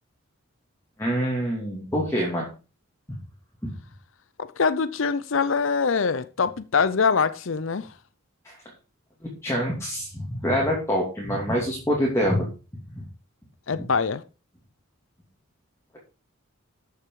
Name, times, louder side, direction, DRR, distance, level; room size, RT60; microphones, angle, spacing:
voice 1, 1.0-2.5 3.6-3.7 8.4-8.5 9.2-12.5 13.0-13.1 13.8-13.9, equal, 15° left, 2.8 m, -26 dB
voice 2, 4.4-7.9 13.7-14.2, left 5 dB, 65° left, 0.6 m, -24 dB
13.5 x 6.7 x 4.8 m
head